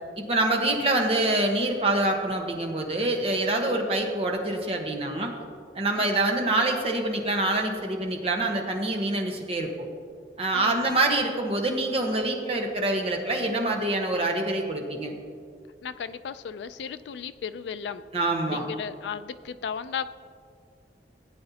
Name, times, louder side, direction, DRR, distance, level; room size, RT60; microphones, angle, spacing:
voice 1, 0.2-5.3 5.7-9.9 10.4-15.1 18.1-18.7, right 2 dB, 35° right, 2 dB, 1.1 m, -26 dB
voice 2, 15.8-18.0 18.5-20.1, left 7 dB, 75° left, 12 dB, 0.3 m, -35 dB
17.0 x 8.6 x 2.8 m, 2.2 s
head